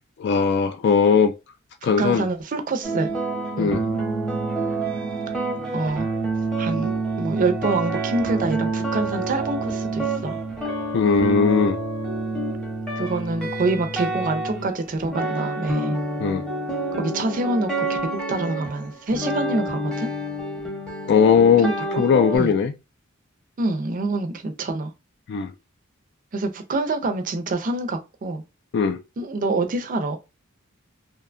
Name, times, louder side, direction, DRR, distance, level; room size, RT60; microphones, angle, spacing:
voice 1, 0.2-1.3 1.8-2.2 3.6-3.8 10.9-11.8 16.2-16.4 21.1-21.7 22.0-22.7 25.3-25.5 28.7-29.0, left 6 dB, 55° left, 0.3 m, -18 dB
voice 2, 1.8-3.1 3.6-3.8 5.7-6.1 6.6-10.4 13.0-16.0 17.0-18.0 18.3-20.1 21.6-22.0 22.3-22.5 23.6-24.9 26.3-28.4 29.2-30.2, right 2 dB, 40° right, 0.5 m, -26 dB
sound 1, 2.8-22.4, right 2 dB, 5° left, 0.7 m, -28 dB
2.7 x 2.1 x 2.5 m
head